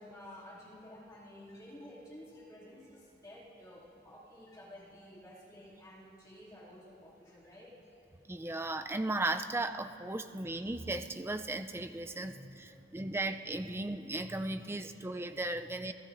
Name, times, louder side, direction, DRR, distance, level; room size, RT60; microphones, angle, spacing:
voice 1, 0.0-7.8 12.7-13.2 15.5-15.6, left 1 dB, 20° left, -7 dB, 2.5 m, -52 dB
voice 2, 8.3-15.9, right 2 dB, 15° right, 8 dB, 0.4 m, -36 dB
29.0 x 15.5 x 2.6 m, 2.9 s
head